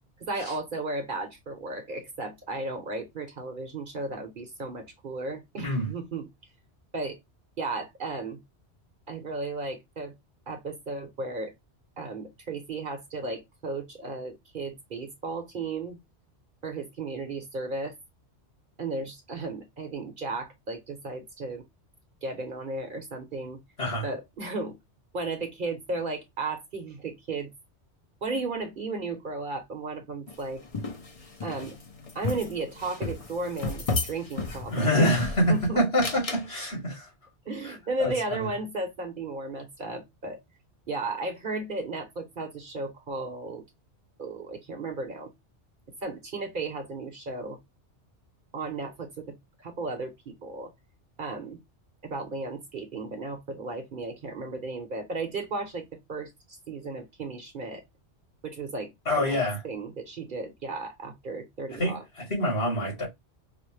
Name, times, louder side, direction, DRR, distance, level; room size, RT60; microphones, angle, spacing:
voice 1, 0.2-6.3 6.9-7.2 7.6-8.4 9.1-10.1 10.5-11.5 12.0-16.0 16.6-17.9 18.8-21.6 22.2-23.6 24.0-24.8 25.1-27.5 28.2-30.6 31.4-31.8 32.1-35.2 35.5-35.8 37.5-40.4 40.9-43.6 44.2-45.3 46.0-47.6 48.5-50.7 51.2-51.6 52.0-56.3 56.7-57.8 58.4-58.9 59.2-59.4 59.6-62.0, right 3 dB, 50° right, 0.9 m, -34 dB
sound 1, 30.3-35.6 36.0-36.5, left 3 dB, 35° left, 0.7 m, -34 dB
voice 2, 34.7-37.1 37.6-38.5 59.1-59.6 61.8-63.1, equal, 65° left, 2.9 m, -26 dB
5.0 x 2.0 x 3.1 m
omnidirectional pair, 1.2 m